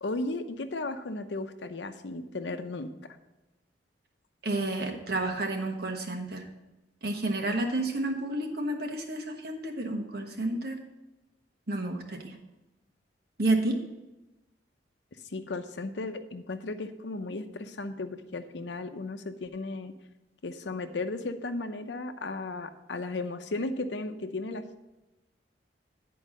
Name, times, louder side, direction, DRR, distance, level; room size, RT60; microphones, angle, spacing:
voice 1, 0.0-2.9 15.2-19.9 20.4-24.8, left 2 dB, 80° left, 8 dB, 0.7 m, -35 dB
voice 2, 4.4-6.5 7.0-10.8 11.7-12.3 13.4-13.8, right 2 dB, 60° right, 3 dB, 1.3 m, -30 dB
9.9 x 4.7 x 6.4 m, 1.0 s
head